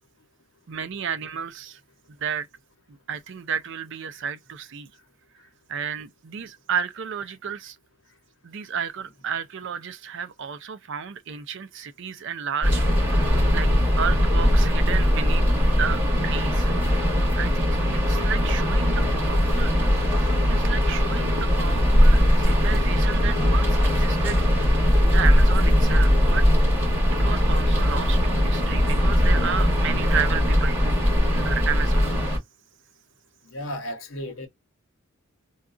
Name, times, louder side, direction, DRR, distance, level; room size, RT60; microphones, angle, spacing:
voice 1, 0.7-1.8 2.2-2.5 2.9-4.9 5.7-7.8 8.4-13.7 14.0-16.7 17.4-17.7 18.1-19.7 20.5-24.4 24.7-26.4 27.2-32.1, right 7 dB, 60° right, 0.4 m, -32 dB
sound 1, 12.6-32.4, equal, 10° right, 2.3 m, -20 dB
voice 2, 33.5-34.5, equal, 70° left, 0.9 m, -34 dB
3.9 x 2.3 x 2.4 m
head